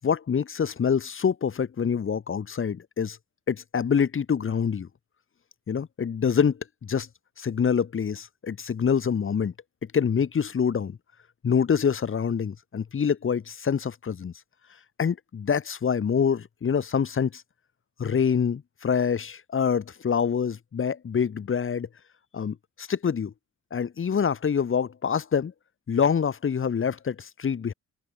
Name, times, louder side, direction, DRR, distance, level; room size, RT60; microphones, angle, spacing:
voice 1, 0.0-3.2 3.5-4.9 5.7-7.1 7.4-9.5 9.9-11.0 11.4-14.3 15.0-17.4 18.0-21.9 22.3-23.3 23.7-25.5 25.9-27.7, left 7 dB, 45° left, 6.6 m, -26 dB
open air
cardioid pair, 100°, 30 cm